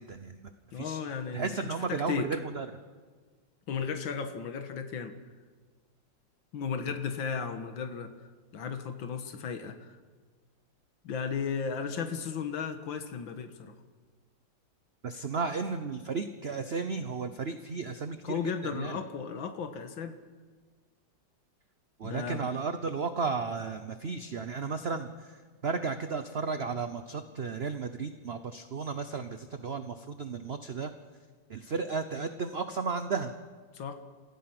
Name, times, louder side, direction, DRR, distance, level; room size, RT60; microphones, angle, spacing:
voice 1, 0.0-1.0 1.3-2.7 15.0-18.4 18.7-19.0 22.0-30.9 31.5-33.3, right 5 dB, 45° right, 9 dB, 0.8 m, -34 dB
voice 2, 0.7-2.3 3.7-5.2 6.5-10.0 11.0-13.8 18.2-20.2 22.0-22.5 33.7-33.9, left 6 dB, 90° left, 7 dB, 2.1 m, -35 dB
28.5 x 16.0 x 6.0 m, 1.5 s
omnidirectional pair, 2.1 m